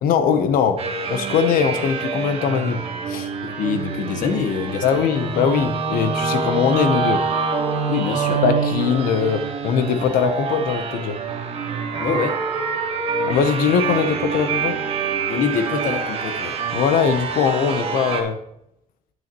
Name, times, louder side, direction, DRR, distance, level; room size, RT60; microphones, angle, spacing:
voice 1, 0.0-0.8 1.1-2.8 3.1-3.3 4.8-7.2 8.4-11.2 13.2-14.7 16.7-18.4, left 7 dB, 85° left, 9 dB, 0.9 m, -21 dB
sound 1, 0.8-18.2, right 5 dB, 40° right, 1.4 m, -26 dB
voice 2, 3.4-5.0 7.9-8.4 12.0-12.4 15.3-16.5, left 5 dB, 65° left, 6 dB, 1.3 m, -25 dB
9.1 x 9.0 x 3.0 m, 0.76 s
cardioid pair, 165°, 15 cm